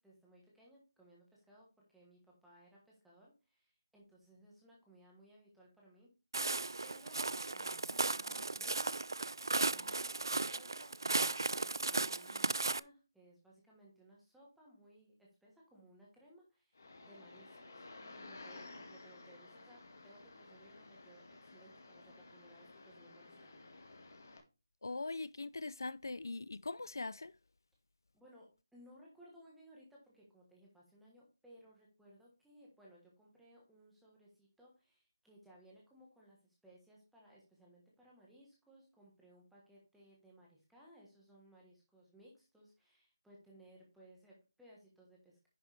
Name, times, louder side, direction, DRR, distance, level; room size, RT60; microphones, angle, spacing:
voice 1, 0.0-6.1 6.8-24.0 28.1-45.5, right 1 dB, ahead, 1.3 m, -62 dB
Walk footsteps, 6.3-12.8, right 3 dB, 80° right, 0.4 m, -36 dB
sound 1, 16.7-24.4, left 2 dB, 40° left, 1.9 m, -54 dB
voice 2, 24.8-27.3, left 3 dB, 65° left, 0.4 m, -41 dB
10.0 x 6.2 x 3.4 m
figure-of-eight pair, 180°, 2 cm